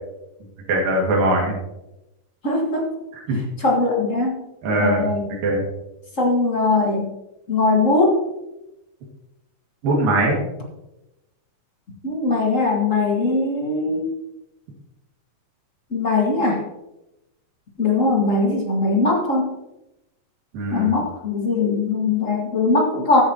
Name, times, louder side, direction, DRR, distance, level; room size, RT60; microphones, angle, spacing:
voice 1, 0.7-1.5 3.3-3.4 4.6-5.1 5.4-5.7 9.8-10.4 20.5-21.0, right 1 dB, 75° right, -2 dB, 3.9 m, -20 dB
voice 2, 2.4-2.9 3.6-4.4 4.8-5.3 6.2-7.1 7.5-8.2 12.0-14.1 15.9-16.6 17.8-19.5 20.7-23.2, left 3 dB, 35° left, -1 dB, 1.4 m, -20 dB
15.0 x 9.5 x 3.0 m, 0.92 s
omnidirectional pair, 4.0 m